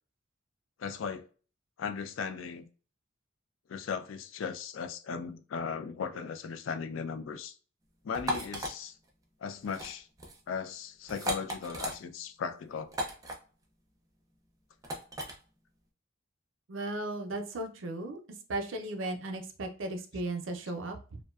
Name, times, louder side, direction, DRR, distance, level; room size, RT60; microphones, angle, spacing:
voice 1, 0.8-1.3 1.8-2.7 3.7-7.5 8.0-9.0 9.4-10.1 10.5-12.9, left 6 dB, 80° left, 0.4 m, -37 dB
sound 1, 8.1-8.7 9.6-9.9 10.2-10.4 11.1-12.0 12.9-13.3 14.8-15.3, equal, 20° right, 0.4 m, -35 dB
voice 2, 16.7-18.2 18.5-21.2, right 2 dB, 80° right, 0.5 m, -36 dB
2.5 x 2.2 x 2.3 m
head